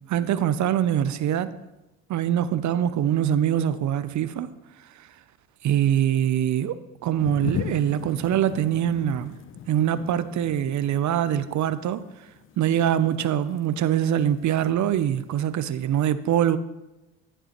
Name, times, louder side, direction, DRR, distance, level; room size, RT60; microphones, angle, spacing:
voice 1, 0.1-1.5 2.1-4.5 5.6-6.8 7.0-9.3 9.7-12.0 12.6-16.6, right 10 dB, 55° right, 0.6 m, -23 dB
sound 1, 7.2-15.6, left 10 dB, 40° left, 0.4 m, -39 dB
14.0 x 6.7 x 3.0 m
supercardioid pair, 70°, 35 cm